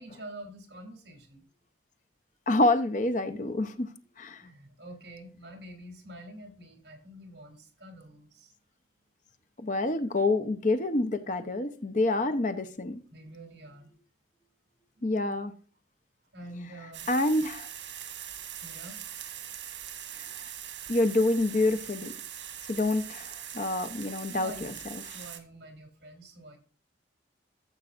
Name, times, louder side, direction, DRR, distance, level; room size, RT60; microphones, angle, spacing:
voice 1, 0.0-1.5 4.0-8.5 13.1-14.0 14.3-15.0 16.3-17.1 18.6-19.0 24.1-24.8 25.1-26.6, right 1 dB, 60° right, 2.9 m, -47 dB
voice 2, 2.5-3.9 4.2-4.4 9.6-13.0 15.0-15.5 17.1-17.7 20.2-20.4 20.9-22.1 22.7-24.7, left 2 dB, 45° left, 0.8 m, -27 dB
sound 1, 16.9-25.4, right 10 dB, 80° right, 1.7 m, -42 dB
14.0 x 7.4 x 2.5 m
head